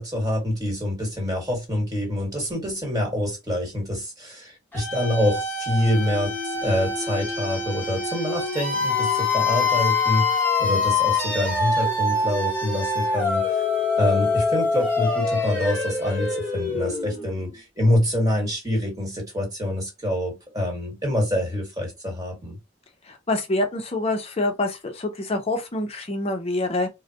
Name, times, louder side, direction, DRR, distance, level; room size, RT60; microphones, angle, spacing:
voice 1, 0.0-13.6 14.0-22.6, left 1 dB, 20° right, 1.4 m, -26 dB
sound 1, 4.7-17.5, left 4 dB, 10° left, 1.0 m, -25 dB
voice 2, 23.1-26.9, left 2 dB, 30° left, 0.5 m, -26 dB
3.8 x 2.1 x 2.7 m
head